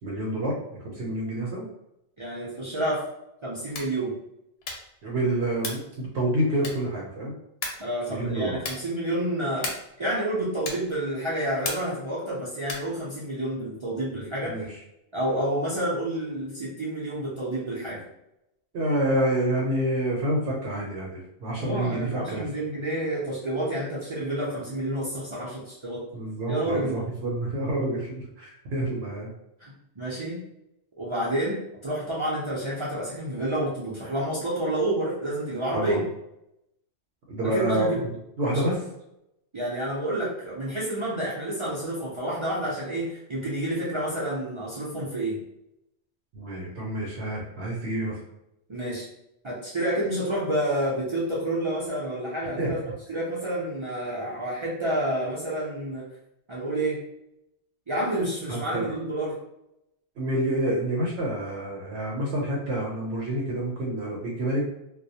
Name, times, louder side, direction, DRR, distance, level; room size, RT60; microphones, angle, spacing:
voice 1, 0.0-1.7 5.0-7.3 8.1-8.6 14.4-14.8 18.7-22.5 26.1-29.3 35.7-36.1 37.3-38.1 38.4-38.8 46.3-48.2 52.6-52.8 58.5-59.0 60.2-64.6, right 1 dB, 65° right, -3 dB, 0.8 m, -28 dB
voice 2, 2.2-3.1 3.4-4.2 7.8-9.7 10.0-14.5 15.1-18.0 21.6-26.0 26.5-26.9 29.6-30.4 31.0-36.0 37.5-38.0 38.5-38.6 39.5-45.4 48.7-49.0 49.4-52.8 53.1-56.0 56.5-57.0 57.9-59.4, right 1 dB, 45° right, -7 dB, 0.4 m, -29 dB
sound 1, 3.6-4.0 4.6-5.0 5.6-5.9 6.6-7.0 7.6-7.9 8.6-8.9 9.6-10.0 10.6-11.0 11.6-12.0 12.6-13.0, left 3 dB, 65° left, 0.7 m, -35 dB
2.2 x 2.0 x 2.7 m, 0.84 s
omnidirectional pair, 1.2 m